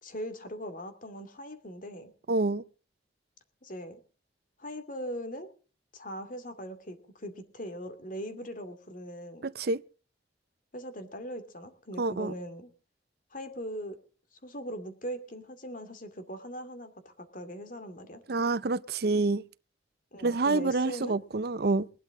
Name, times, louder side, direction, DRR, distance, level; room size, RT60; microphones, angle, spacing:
voice 1, 0.0-2.1 3.6-4.0 4.6-5.5 5.9-9.4 10.7-12.7 13.3-14.0 14.3-18.2 20.1-21.2, equal, 45° left, 2.4 m, -40 dB
voice 2, 2.3-2.6 9.4-9.8 12.0-12.3 18.3-19.4 20.2-21.9, right 3 dB, 60° right, 0.6 m, -27 dB
20.5 x 12.0 x 3.7 m
head